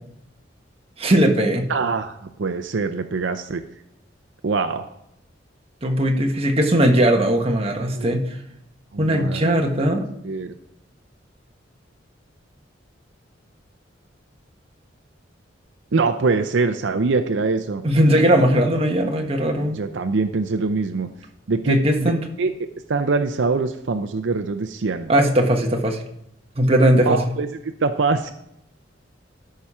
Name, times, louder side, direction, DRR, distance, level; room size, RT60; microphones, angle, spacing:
voice 1, 1.0-1.7 5.8-8.4 9.0-10.0 17.8-19.8 21.7-22.2 25.1-26.0 26.6-27.2, right 1 dB, 30° right, 2 dB, 1.3 m, -19 dB
voice 2, 1.7-3.6 4.4-4.9 7.9-8.1 8.9-9.6 10.2-10.5 15.9-17.8 19.6-21.1 21.5-22.1 22.4-22.5 22.9-25.1 26.9-28.3, right 4 dB, 75° right, 8 dB, 0.6 m, -23 dB
13.0 x 5.7 x 4.8 m, 0.77 s
head